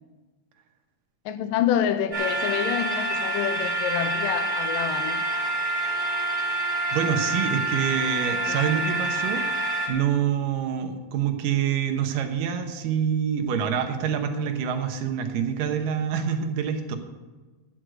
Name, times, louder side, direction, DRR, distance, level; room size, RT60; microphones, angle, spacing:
voice 1, 1.3-5.2 8.3-8.7, left 9 dB, 85° left, 2.3 m, -27 dB
sound 1, 2.1-9.9, right 2 dB, 5° left, 2.5 m, -27 dB
voice 2, 6.9-17.0, right 8 dB, 75° right, 2.7 m, -26 dB
14.5 x 6.5 x 7.7 m
omnidirectional pair, 4.0 m